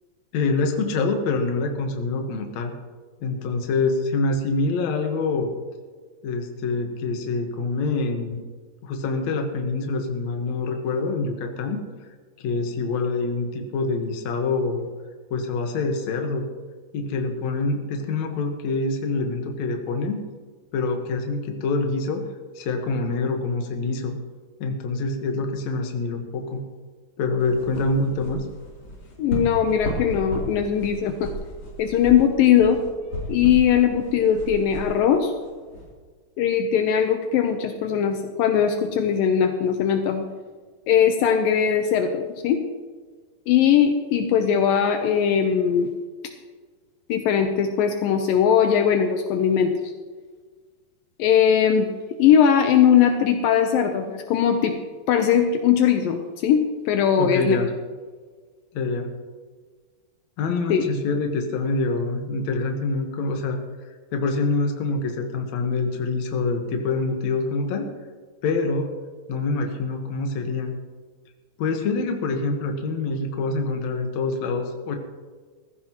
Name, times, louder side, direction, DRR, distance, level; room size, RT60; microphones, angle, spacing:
voice 1, 0.3-2.7 3.2-5.5 6.2-8.4 8.8-11.8 12.4-14.9 15.3-16.5 16.9-20.2 20.7-22.3 22.6-24.2 24.6-26.6 27.2-28.4 57.2-57.7 58.7-59.1 60.4-63.6 64.1-67.9 68.4-68.9 69.3-70.8 71.6-75.0, left 3 dB, 60° left, 4 dB, 2.4 m, -25 dB
sound 1, 27.4-35.9, equal, 35° left, 3.8 m, -34 dB
voice 2, 29.2-31.3 31.8-32.8 33.3-35.3 36.4-40.2 40.9-42.6 43.5-45.9 47.1-49.7 51.2-51.9 52.2-54.8 55.1-57.6 60.7-60.8, left 8 dB, 75° left, 5 dB, 2.5 m, -20 dB
18.0 x 15.0 x 3.0 m, 1.5 s
omnidirectional pair, 4.2 m